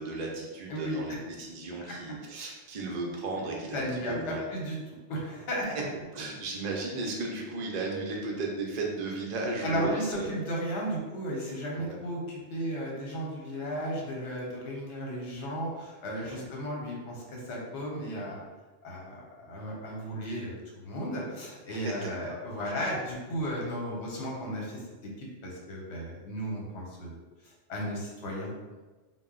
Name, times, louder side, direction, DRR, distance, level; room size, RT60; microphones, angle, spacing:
voice 1, 0.0-4.4 6.1-10.3 11.7-12.0 16.2-16.5 21.8-22.4, right 3 dB, 65° right, -1 dB, 0.4 m, -35 dB
voice 2, 0.7-1.0 3.7-4.8 5.1-5.7 9.6-18.4 18.8-20.6 20.8-27.2 27.7-28.7, equal, 75° left, -2 dB, 1.0 m, -34 dB
2.1 x 2.1 x 3.6 m, 1.2 s
omnidirectional pair, 1.2 m